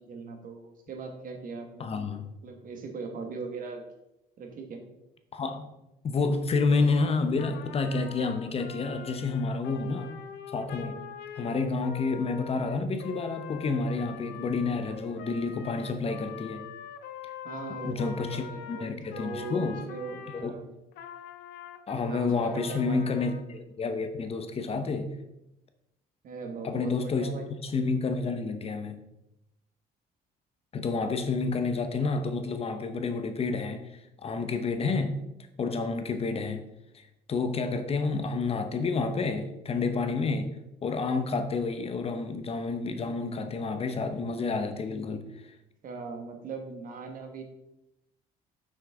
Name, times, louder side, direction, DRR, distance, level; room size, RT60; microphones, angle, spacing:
voice 1, 0.1-1.8 2.4-3.8 4.4-4.8 17.4-20.6 22.1-23.2 26.2-27.5 45.8-47.4, right 4 dB, 55° right, 4 dB, 1.6 m, -39 dB
voice 2, 1.8-2.3 5.3-5.7 6.0-10.1 10.5-11.0 11.4-16.6 17.2-17.3 17.8-19.8 20.3-20.5 21.9-25.1 26.6-27.3 27.6-29.0 30.7-35.2 35.6-36.6 36.9-40.5 40.8-45.2, left 4 dB, 35° left, 8 dB, 0.8 m, -29 dB
Trumpet, 7.4-20.5 20.9-23.5, left 8 dB, 80° left, 0.8 m, -44 dB
7.3 x 6.3 x 3.6 m, 0.89 s
cardioid pair, 110°, 17 cm